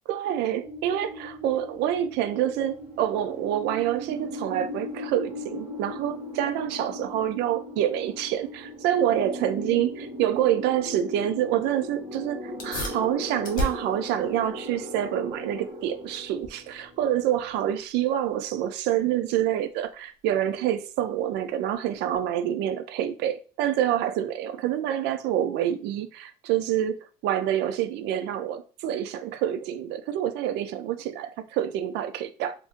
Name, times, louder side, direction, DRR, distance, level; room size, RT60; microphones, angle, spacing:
voice 1, 0.1-27.0 27.2-32.5, right 11 dB, 85° right, 0.4 m, -27 dB
sound 1, 0.6-17.5, left 1 dB, 45° right, 1.0 m, -38 dB
sound 2, 12.5-22.5, left 1 dB, 50° left, 1.1 m, -39 dB
2.6 x 2.5 x 3.6 m
cardioid pair, 110°, 17 cm